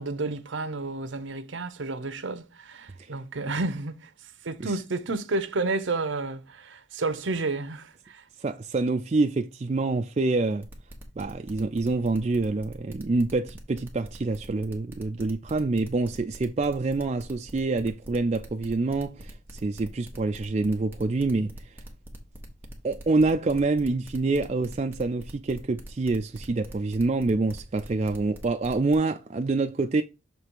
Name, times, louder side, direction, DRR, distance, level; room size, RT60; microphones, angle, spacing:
voice 1, 0.0-8.2, right 3 dB, 70° right, 0.8 m, -31 dB
voice 2, 8.4-10.6 11.2-21.5 22.8-30.0, right 3 dB, 30° right, 0.4 m, -26 dB
sound 1, 10.6-29.0, equal, 10° right, 1.3 m, -43 dB
6.7 x 3.3 x 4.6 m
head